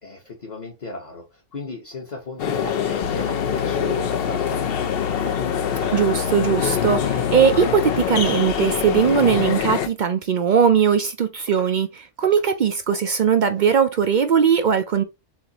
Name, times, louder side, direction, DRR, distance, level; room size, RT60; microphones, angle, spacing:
voice 1, 0.0-5.2, left 3 dB, 40° left, 1.1 m, -35 dB
sound 1, 2.4-9.9, left 8 dB, 60° left, 0.8 m, -24 dB
sound 2, 2.7-4.1 4.5-4.9 5.2-5.5 5.8-6.1 6.4-6.7 7.0-7.2 7.6-7.9 8.2-8.6 8.8-9.0 9.5-9.7 10.2-10.3 10.8-10.9 11.5-11.8 12.2-13.7, right 4 dB, 90° right, 1.8 m, -42 dB
sound 3, 3.0-8.0, left 5 dB, 80° left, 1.2 m, -32 dB
voice 2, 5.9-15.0, right 7 dB, 60° right, 0.5 m, -19 dB
7.2 x 2.6 x 2.8 m
omnidirectional pair, 1.2 m